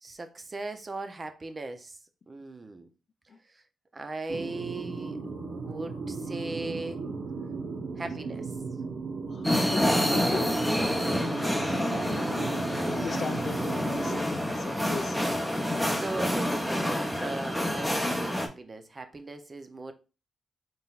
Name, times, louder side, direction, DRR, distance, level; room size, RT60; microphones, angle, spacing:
voice 1, 0.0-2.0 2.3-2.9 3.9-5.2 5.6-7.0 8.0-8.5 15.9-19.9, right 3 dB, 30° right, 0.6 m, -38 dB
sound 1, 4.3-14.2, right 4 dB, 70° right, 0.9 m, -36 dB
voice 2, 9.3-11.1 12.7-15.9 17.1-17.2, left 5 dB, 55° left, 0.4 m, -39 dB
sound 2, 9.4-18.5, equal, 5° left, 0.7 m, -28 dB
4.0 x 3.8 x 2.4 m
cardioid pair, 90°, 0 cm